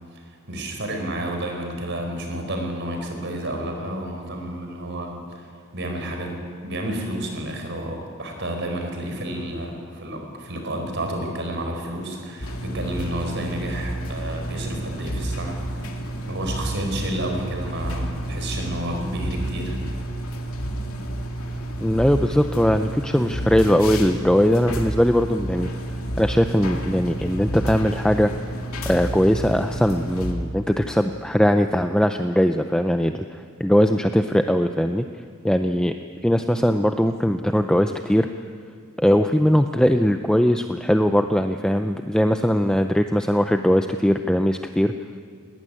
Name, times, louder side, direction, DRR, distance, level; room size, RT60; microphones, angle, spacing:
voice 1, 0.1-5.5 5.7-15.6 16.2-19.8, right 1 dB, 55° right, 3 dB, 4.8 m, -30 dB
sound 1, 12.4-30.3, right 1 dB, 75° left, 2.5 m, -30 dB
voice 2, 21.8-25.7 26.2-28.3 28.9-35.1 35.4-36.0 36.2-38.3 39.0-44.9, equal, 5° left, 7 dB, 0.5 m, -20 dB
20.0 x 18.5 x 10.0 m, 2.2 s
head